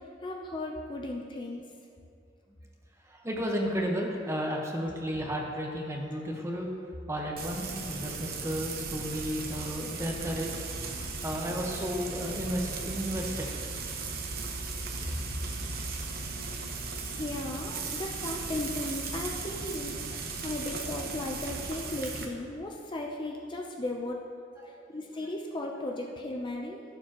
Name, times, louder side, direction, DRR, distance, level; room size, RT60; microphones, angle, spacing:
voice 1, 0.2-1.7 17.1-24.2 24.6-26.8, left 2 dB, 25° left, 0 dB, 0.6 m, -36 dB
voice 2, 3.1-6.7 7.1-10.6 11.2-13.5 24.6-24.7, equal, 15° right, 0 dB, 1.2 m, -33 dB
Frying (food), 7.4-22.3, right 4 dB, 55° right, 1.0 m, -37 dB
16.5 x 7.1 x 3.0 m, 2.4 s
head